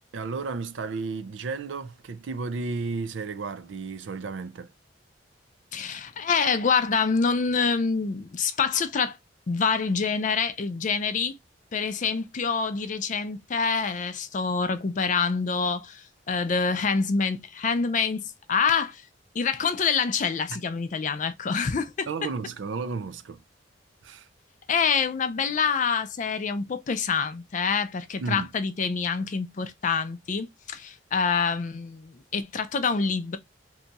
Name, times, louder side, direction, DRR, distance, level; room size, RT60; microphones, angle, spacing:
voice 1, 0.1-4.7 20.5-20.6 22.1-23.4 24.0-24.3 28.2-28.5, right 4 dB, 80° right, 0.5 m, -33 dB
voice 2, 5.7-9.2 9.5-11.4 11.7-19.0 19.3-22.1 24.7-33.4, left 5 dB, 45° left, 0.4 m, -26 dB
2.7 x 2.3 x 3.9 m
head